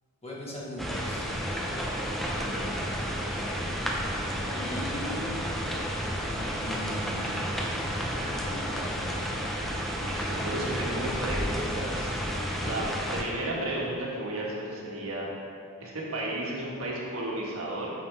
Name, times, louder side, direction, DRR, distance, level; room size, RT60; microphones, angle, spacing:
voice 1, 0.2-1.3 4.5-5.3 6.6-9.2, equal, 30° left, -5 dB, 1.5 m, -40 dB
sound 1, 0.8-13.2, equal, ahead, 0.7 m, -31 dB
voice 2, 2.3-2.7 10.0-12.9 13.1-15.3 15.8-17.9, right 1 dB, 75° right, -4 dB, 1.6 m, -33 dB
8.8 x 6.3 x 3.5 m, 2.4 s
head